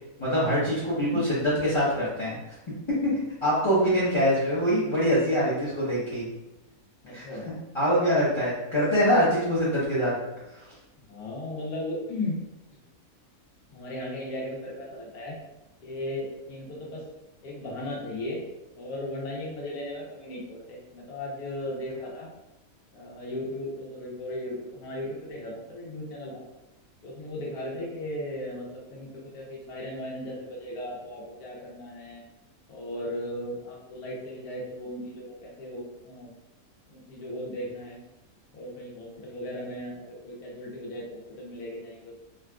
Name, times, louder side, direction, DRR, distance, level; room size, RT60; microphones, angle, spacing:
voice 1, 0.2-2.4 2.9-3.1 3.4-6.3 7.1-7.3 7.7-10.1, equal, 30° left, -10 dB, 0.6 m, -24 dB
voice 2, 7.0-7.5 11.1-12.4 13.7-15.3 15.8-17.0 17.4-18.4 18.8-22.3 22.9-26.4 27.0-32.2 32.7-36.3 36.9-38.0 38.5-42.2, left 1 dB, 85° left, -3 dB, 1.3 m, -36 dB
3.7 x 2.4 x 2.2 m, 0.97 s
omnidirectional pair, 1.6 m